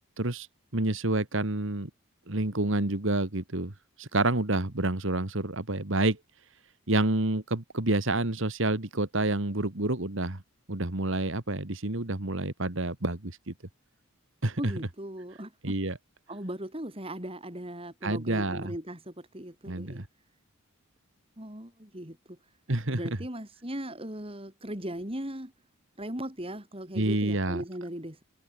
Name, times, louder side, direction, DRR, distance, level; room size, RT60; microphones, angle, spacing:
voice 1, 0.2-0.5 0.7-1.9 2.3-3.7 4.0-6.2 6.9-10.4 10.7-13.5 14.4-14.6 15.6-16.0 18.0-18.6 19.7-20.1 22.7-23.0 26.9-27.6, right 2 dB, 60° right, 2.0 m, -28 dB
voice 2, 14.6-15.7 16.3-20.0 21.4-22.4 22.9-25.5 26.0-28.2, right 1 dB, 25° right, 4.0 m, -38 dB
head